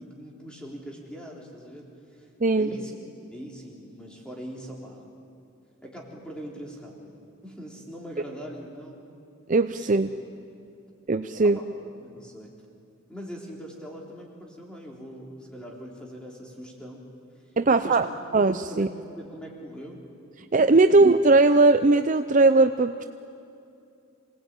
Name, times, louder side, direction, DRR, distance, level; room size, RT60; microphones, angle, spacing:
voice 1, 0.0-1.9 2.1-2.3 2.5-2.9 3.3-5.1 5.8-7.2 7.4-9.0 9.9-10.0 11.4-11.6 12.0-12.5 13.1-17.1 17.7-18.0 18.7-20.0 20.4-20.5 20.9-21.0, equal, 5° left, -2 dB, 3.7 m, -41 dB
voice 2, 9.5-10.1 11.1-11.6 17.6-18.0 18.3-18.9 20.5-23.0, right 3 dB, 35° right, 9 dB, 0.5 m, -19 dB
27.0 x 19.0 x 9.0 m, 2.5 s
head